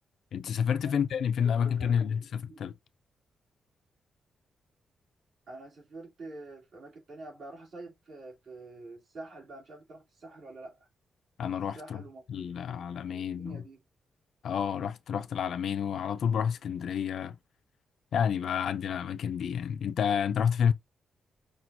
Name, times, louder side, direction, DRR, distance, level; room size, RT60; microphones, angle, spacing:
voice 1, 0.3-2.7 11.4-12.0 12.3-13.6 14.4-17.4 18.1-20.7, left 8 dB, 60° left, 0.4 m, -29 dB
voice 2, 1.4-2.6 5.5-10.9 11.7-12.2 12.6-12.8 13.1-13.8, right 2 dB, 45° right, 2.4 m, -47 dB
5.9 x 2.4 x 2.6 m
wide cardioid pair, 180°, 0 cm